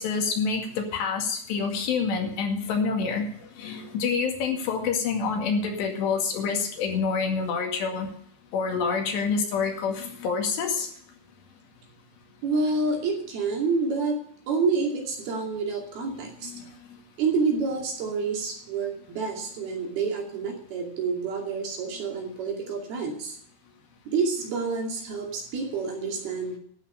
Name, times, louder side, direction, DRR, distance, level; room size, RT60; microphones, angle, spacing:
voice 1, 0.0-3.3 3.6-8.1 8.5-10.9 16.4-16.7, left 5 dB, 70° left, 2 dB, 4.2 m, -27 dB
voice 2, 12.4-14.2 14.5-16.5 17.2-23.4 24.1-26.6, right 4 dB, 60° right, 1 dB, 4.2 m, -28 dB
12.0 x 9.0 x 6.5 m, 0.62 s
omnidirectional pair, 5.4 m